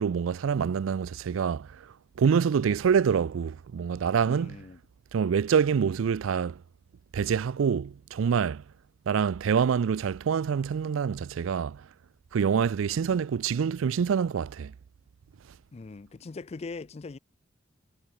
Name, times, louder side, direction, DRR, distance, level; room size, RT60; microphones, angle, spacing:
voice 1, 0.0-1.9 2.2-4.6 5.1-6.6 7.1-8.6 9.1-11.8 12.3-14.7, right 7 dB, 85° right, 0.4 m, -26 dB
voice 2, 4.2-4.8 15.7-17.2, left 3 dB, 30° left, 0.4 m, -41 dB
head